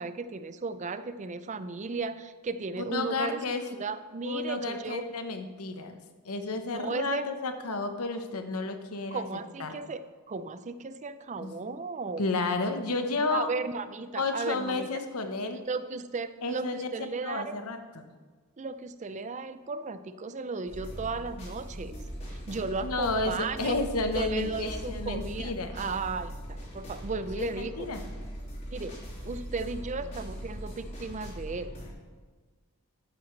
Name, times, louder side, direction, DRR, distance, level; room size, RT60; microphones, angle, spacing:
voice 1, 0.0-3.4 3.7-5.0 6.7-7.3 9.1-10.0 10.3-12.3 13.3-14.9 15.6-17.6 18.6-21.9 22.3-23.7 24.1-27.9 28.7-29.0 29.2-31.7, right 4 dB, 30° right, 12 dB, 0.4 m, -35 dB
voice 2, 2.9-3.6 4.2-6.0 6.2-9.3 9.6-9.8 11.4-11.5 12.2-13.5 14.1-15.6 16.4-16.9 17.2-18.1 22.8-25.7 27.4-28.0, left 3 dB, 80° left, 7 dB, 1.1 m, -31 dB
sound 1, 20.7-31.9, equal, 30° left, 3.5 m, -40 dB
12.0 x 9.5 x 3.2 m, 1.4 s
head